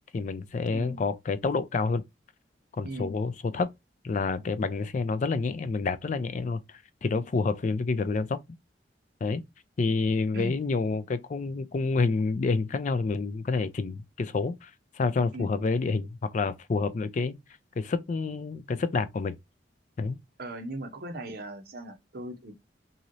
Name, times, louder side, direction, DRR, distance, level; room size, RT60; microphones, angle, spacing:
voice 1, 0.1-2.0 2.8-3.7 4.0-8.4 9.2-9.4 9.8-17.4 17.8-19.4 20.0-20.2, left 4 dB, 40° left, 0.4 m, -28 dB
voice 2, 2.8-3.2 10.3-10.6 15.3-15.7 20.4-22.5, right 1 dB, 55° right, 0.7 m, -38 dB
3.0 x 2.7 x 2.5 m
head